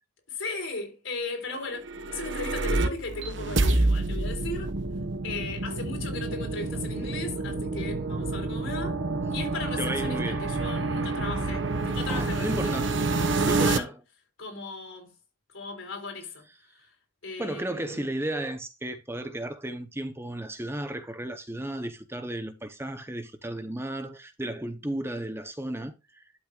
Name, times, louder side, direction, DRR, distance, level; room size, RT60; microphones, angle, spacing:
voice 1, 0.3-1.8 2.1-4.7 5.2-9.0 9.3-12.7 13.1-13.9 14.4-15.1 15.5-16.4 16.8-16.9 17.2-18.1, left 3 dB, 85° left, 3.7 m, -37 dB
sound 1, 1.7-13.8, right 3 dB, 70° right, 1.0 m, -28 dB
voice 2, 9.8-10.5 12.1-12.9 13.2-14.0 17.4-26.2, right 1 dB, 10° right, 0.7 m, -34 dB
12.0 x 6.2 x 2.4 m
head